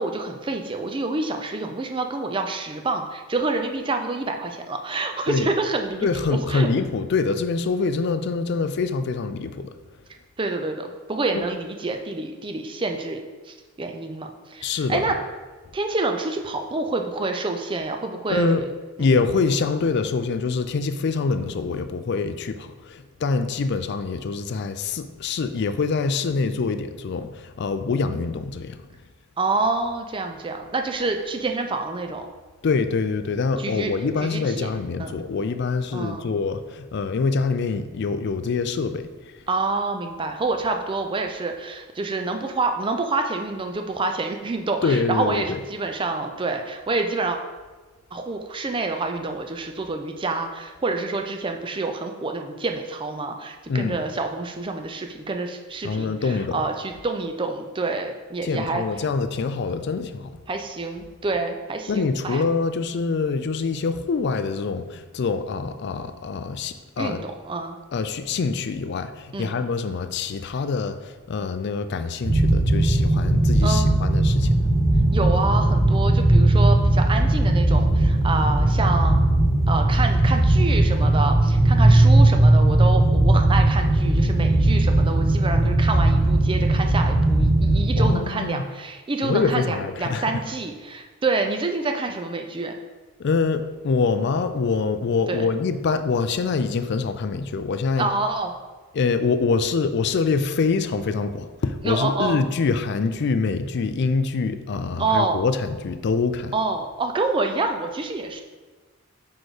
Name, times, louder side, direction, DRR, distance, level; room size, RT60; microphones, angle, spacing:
voice 1, 0.0-6.7 10.4-13.2 13.5-15.1 15.7-18.7 19.0-19.1 29.4-32.3 33.6-33.9 34.2-34.7 35.0-35.1 35.9-36.3 39.5-47.4 48.1-58.8 60.5-62.4 67.0-67.8 69.3-69.5 73.6-74.0 75.1-79.3 79.7-92.8 95.3-95.5 98.0-98.5 101.8-102.4 105.0-105.4 106.5-108.4, right 3 dB, 25° right, 5 dB, 0.5 m, -27 dB
voice 2, 6.0-9.7 14.6-15.1 18.3-18.6 19.0-28.8 32.6-39.3 44.8-45.6 53.7-54.0 55.8-56.6 58.4-60.4 61.9-67.3 67.9-74.6 88.0-88.6 89.2-90.4 93.2-98.1 98.9-106.6, left 4 dB, 55° left, 10 dB, 0.4 m, -25 dB
sound 1, 72.2-88.1, right 1 dB, 45° right, 1.1 m, -18 dB
4.7 x 4.3 x 4.8 m, 1.3 s
head